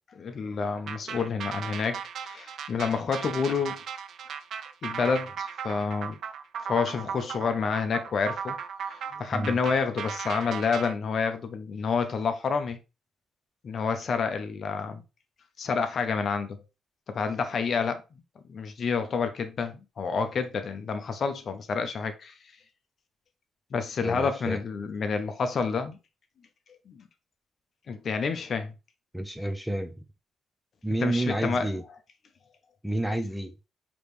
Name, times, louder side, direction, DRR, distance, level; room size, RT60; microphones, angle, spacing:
voice 1, 0.1-3.8 4.8-6.2 6.6-8.6 8.8-12.8 13.6-15.0 15.6-16.6 17.1-18.0 18.5-22.3 23.7-26.0 26.9-27.1 27.9-28.7 31.0-31.7, left 5 dB, 50° left, 0.7 m, -29 dB
sound 1, 0.9-10.9, right 7 dB, 65° right, 0.5 m, -37 dB
voice 2, 24.0-24.6 29.1-30.0 30.8-31.8 32.8-33.5, right 1 dB, ahead, 0.6 m, -29 dB
5.0 x 3.1 x 3.2 m
cardioid pair, 90°, 0 cm